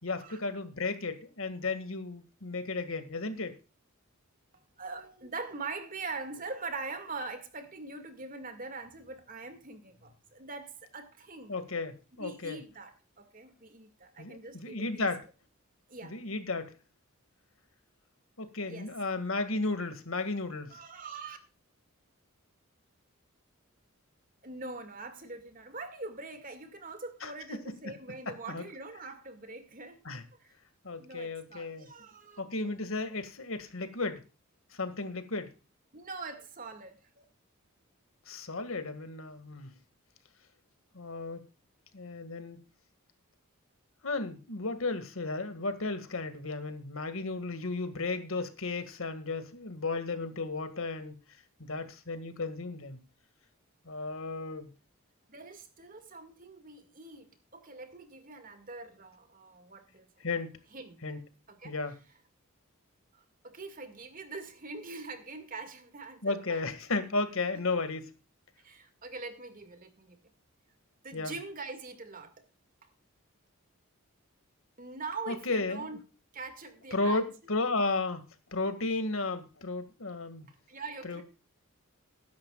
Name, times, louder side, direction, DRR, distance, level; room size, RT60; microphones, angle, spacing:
voice 1, 0.0-3.5 11.5-12.6 14.2-15.2 16.0-16.7 18.4-20.8 27.2-27.7 28.5-28.6 30.1-30.2 30.8-31.9 32.4-34.2 34.7-35.5 38.3-39.7 40.9-41.4 41.9-42.6 44.0-51.2 51.6-53.0 53.9-54.7 60.2-60.5 61.0-61.2 61.6-62.0 66.2-68.1 71.1-71.4 75.3-75.9 76.9-80.5 81.0-81.2, left 3 dB, 70° left, 2.0 m, -34 dB
voice 2, 4.8-11.6 12.1-15.1 15.9-16.2 18.7-18.9 20.7-21.4 24.4-30.0 30.4-30.5 31.0-32.4 35.9-37.2 55.3-60.1 60.7-61.0 61.5-61.7 63.1-66.6 68.6-70.2 71.0-72.3 74.8-76.0 76.3-77.2 80.7-81.2, right 3 dB, 40° right, 2.1 m, -43 dB
20.5 x 10.5 x 2.4 m
head